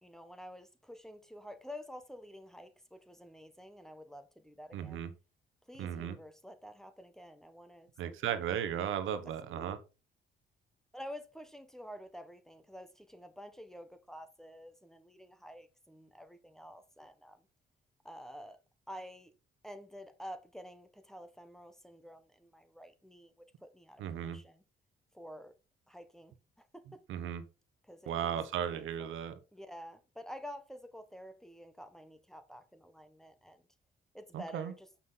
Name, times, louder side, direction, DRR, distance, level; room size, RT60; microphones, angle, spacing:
voice 1, 0.0-5.1 5.7-8.3 9.4-9.7 10.9-17.5 18.0-18.6 18.9-19.3 19.6-24.6 25.1-25.5 25.9-26.3 26.7-27.0 27.8-28.4 28.7-29.1 29.5-33.7 34.1-34.9, equal, ahead, 1.1 m, -49 dB
voice 2, 4.7-5.1 5.8-6.2 8.0-9.8 24.0-24.4 27.1-27.4 28.1-29.4 34.3-34.7, right 9 dB, 80° right, 1.0 m, -36 dB
7.2 x 5.8 x 4.0 m
cardioid pair, 90°, 20 cm